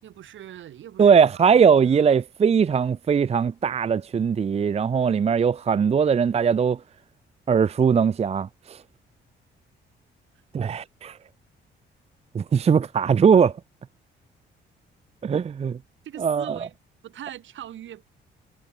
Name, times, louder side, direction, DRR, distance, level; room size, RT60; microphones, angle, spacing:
voice 1, 0.0-2.0 16.0-16.7 17.0-18.1, right 11 dB, 75° right, 4.2 m, -41 dB
voice 2, 1.0-6.8 7.5-8.8 10.5-11.2 12.3-13.5 15.2-15.8 16.2-16.7, right 6 dB, 30° right, 0.5 m, -20 dB
cardioid pair, 90°, 20 cm